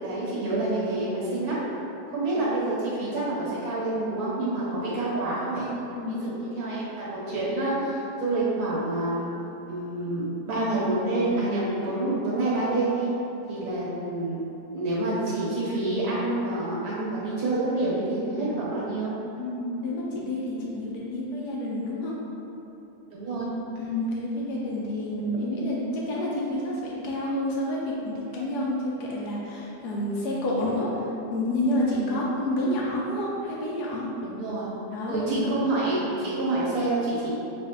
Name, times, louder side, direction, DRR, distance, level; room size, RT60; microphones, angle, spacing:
voice 1, 0.0-1.6 2.1-5.7 6.1-9.3 9.7-13.1 13.5-14.4 14.7-19.1 23.1-23.5 31.9-32.1 34.2-34.7 35.1-37.3, right 2 dB, 70° right, -8 dB, 1.7 m, -28 dB
voice 2, 6.0-6.3 19.4-22.2 23.8-31.1 31.3-34.1 34.9-35.6, left 1 dB, 80° left, -4 dB, 1.2 m, -29 dB
5.9 x 3.2 x 2.8 m, 2.9 s
omnidirectional pair, 1.7 m